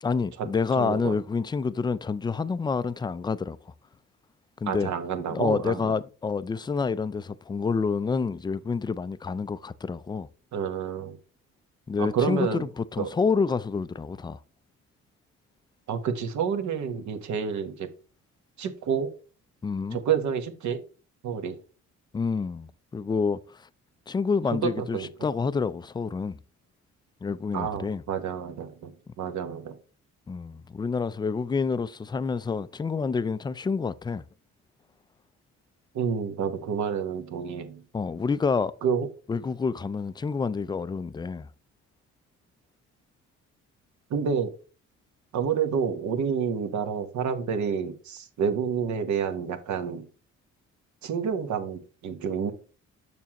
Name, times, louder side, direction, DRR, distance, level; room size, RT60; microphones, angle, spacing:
voice 1, 0.0-3.6 4.6-4.9 5.3-10.3 11.9-14.4 19.6-20.0 22.1-23.7 24.1-26.4 27.2-28.0 30.3-34.2 37.9-38.7 39.3-41.5, left 5 dB, 15° left, 0.3 m, -28 dB
voice 2, 0.8-1.1 4.7-5.9 10.5-11.2 12.0-12.7 13.0-13.1 15.9-17.9 18.6-19.1 19.9-20.8 21.2-21.6 24.8-25.1 27.5-29.8 35.9-37.8 38.8-39.1 44.1-44.5 45.3-50.1 51.0-52.5, right 7 dB, 70° right, 1.1 m, -29 dB
6.9 x 6.1 x 2.9 m
cardioid pair, 90°, 30 cm